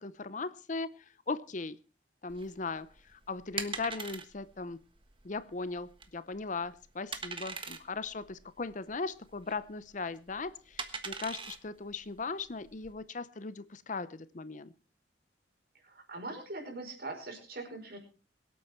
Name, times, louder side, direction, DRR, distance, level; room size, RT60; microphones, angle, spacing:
voice 1, 0.0-1.8 2.2-4.8 5.2-14.7, left 3 dB, 45° left, 15 dB, 0.7 m, -38 dB
sound 1, 2.3-12.9, right 5 dB, 30° right, 1.4 m, -43 dB
voice 2, 15.8-18.0, right 2 dB, 55° right, 3 dB, 5.3 m, -42 dB
23.5 x 8.5 x 4.5 m, 0.35 s
head